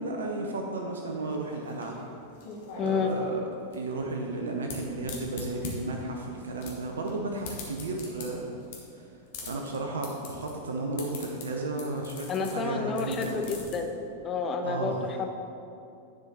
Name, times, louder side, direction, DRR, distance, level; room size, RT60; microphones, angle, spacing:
voice 1, 0.0-2.0 2.8-3.4 3.7-8.6 8.9-9.1 9.5-13.6 14.6-15.1, right 2 dB, 65° right, 1 dB, 0.6 m, -33 dB
sound 1, 1.2-13.7, left 4 dB, 55° left, 1.3 m, -44 dB
voice 2, 2.8-3.1 12.3-13.9 14.2-15.3, left 5 dB, 25° left, 5 dB, 0.6 m, -30 dB
9.7 x 4.8 x 3.9 m, 2.6 s
figure-of-eight pair, 90°, 0 cm